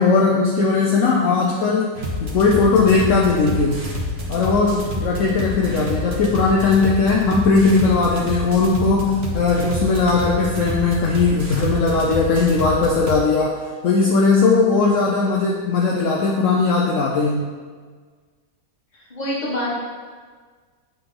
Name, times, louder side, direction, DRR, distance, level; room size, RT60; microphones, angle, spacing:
voice 1, 0.0-1.9 2.2-3.8 4.3-17.5, left 4 dB, 65° left, -2 dB, 1.0 m, -18 dB
sound 1, 2.0-13.1, left 1 dB, 50° right, 1.1 m, -28 dB
voice 2, 19.1-19.7, left 1 dB, 30° left, -5 dB, 1.4 m, -26 dB
6.8 x 3.9 x 3.8 m, 1.5 s
omnidirectional pair, 1.5 m